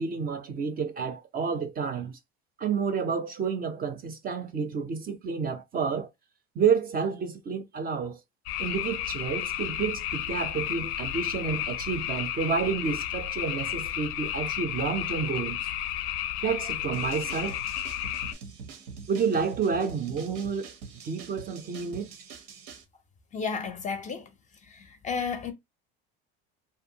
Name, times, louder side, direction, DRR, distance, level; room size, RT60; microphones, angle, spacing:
voice 1, 0.0-2.2 2.6-6.1 6.6-8.2 8.6-15.6 16.4-17.6 19.1-20.7 21.0-22.1, right 6 dB, 30° right, 0.5 m, -30 dB
sound 1, 8.5-18.3, left 12 dB, 85° left, 0.5 m, -32 dB
sound 2, 16.9-22.8, right 5 dB, 80° right, 0.8 m, -44 dB
voice 2, 23.3-24.3 24.7-25.5, left 5 dB, 25° left, 0.5 m, -32 dB
2.6 x 2.2 x 2.7 m
supercardioid pair, 115°, 30 cm